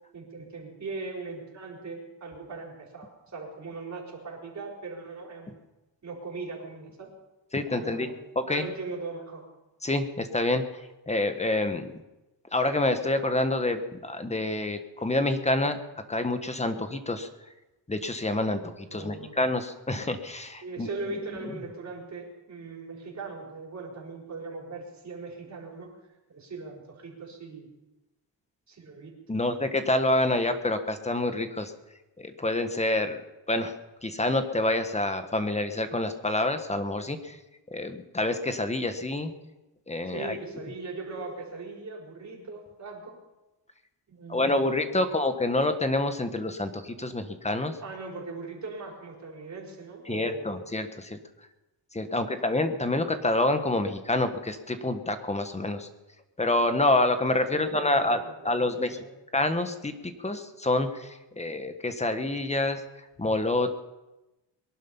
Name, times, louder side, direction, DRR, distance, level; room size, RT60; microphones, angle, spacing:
voice 1, 0.1-5.6 6.0-7.1 7.7-9.5 18.9-19.4 20.6-25.9 26.3-27.7 28.7-29.6 40.0-43.2 44.1-45.1 47.8-50.6 52.1-52.3 57.5-57.9 58.2-59.1, right 3 dB, 35° right, -1 dB, 4.6 m, -40 dB
voice 2, 7.5-8.1 8.3-8.7 9.8-11.9 12.5-15.8 16.1-17.3 17.9-20.9 21.4-21.6 29.3-31.7 32.2-33.2 33.5-33.7 34.0-37.4 37.7-39.3 39.9-40.4 44.3-47.8 50.1-51.2 51.9-55.9 56.4-59.0 59.3-59.9 60.2-62.8 63.2-63.8, left 2 dB, 15° left, 8 dB, 1.3 m, -27 dB
22.0 x 11.5 x 5.6 m, 1.0 s
cardioid pair, 125°, 45 cm